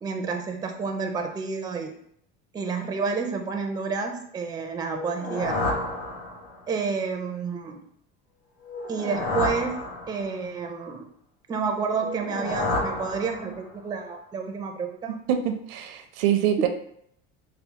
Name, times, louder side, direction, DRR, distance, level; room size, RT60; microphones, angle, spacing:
voice 1, 0.0-1.9 2.5-5.6 6.7-7.8 8.9-11.1 11.5-15.2, right 5 dB, 15° right, 4 dB, 0.4 m, -30 dB
sound 1, 4.9-6.7 8.6-10.5 12.0-13.8, left 2 dB, 90° left, 0.8 m, -30 dB
voice 2, 15.3-16.7, right 10 dB, 80° right, 7 dB, 0.5 m, -24 dB
4.2 x 2.0 x 2.8 m, 0.68 s
supercardioid pair, 110°, 30 cm